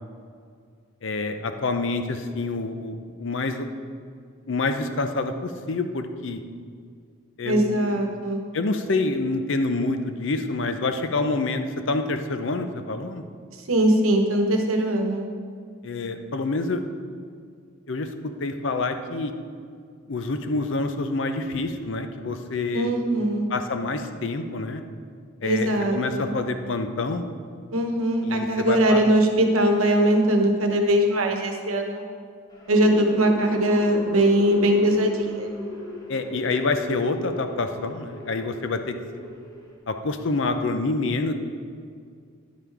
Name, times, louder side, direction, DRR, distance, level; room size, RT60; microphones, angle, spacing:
voice 1, 1.0-3.7 4.5-6.4 7.4-7.9 8.5-13.2 15.8-16.8 17.9-18.1 18.4-19.3 20.1-22.9 23.5-24.8 25.4-27.2 28.3-29.0 36.1-39.0 39.9-41.3, left 3 dB, 60° left, 7 dB, 0.6 m, -27 dB
voice 2, 7.4-8.4 13.7-15.3 22.7-23.5 25.4-26.3 27.7-32.0 32.7-35.5, right 1 dB, 85° right, 4 dB, 1.0 m, -21 dB
sound 1, 32.5-39.8, left 1 dB, 20° left, 1.2 m, -35 dB
10.5 x 5.7 x 4.7 m, 2.2 s
head